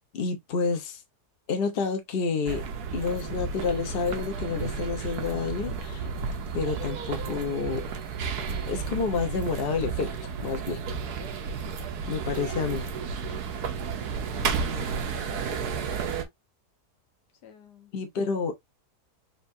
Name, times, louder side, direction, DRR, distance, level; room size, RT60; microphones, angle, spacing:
voice 1, 0.1-1.0 1.5-2.6 2.9-6.1 6.5-7.8 8.7-10.8 12.1-12.9 17.9-18.5, left 5 dB, 45° left, 1.0 m, -29 dB
sound 1, 2.5-16.3, right 5 dB, 75° right, 1.3 m, -32 dB
voice 2, 13.2-13.5 14.6-16.1 17.4-17.9, left 9 dB, 85° left, 1.6 m, -48 dB
4.6 x 2.8 x 2.6 m
omnidirectional pair, 1.7 m